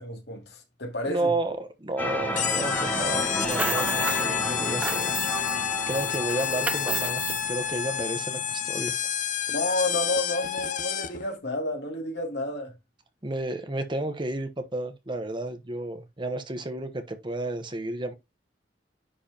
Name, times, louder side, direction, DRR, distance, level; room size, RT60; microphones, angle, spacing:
voice 1, 0.0-1.3 9.5-12.7, left 1 dB, 65° left, 2.5 m, -30 dB
voice 2, 1.0-5.2 5.9-9.0 13.2-18.1, right 2 dB, 25° right, 1.1 m, -32 dB
sound 1, 2.0-8.7, equal, 10° left, 1.8 m, -32 dB
sound 2, 2.4-11.3, left 9 dB, 45° left, 0.6 m, -29 dB
sound 3, 3.3-4.3 4.6-5.5 5.9-7.4, right 3 dB, 10° right, 0.4 m, -33 dB
10.0 x 4.8 x 2.9 m
head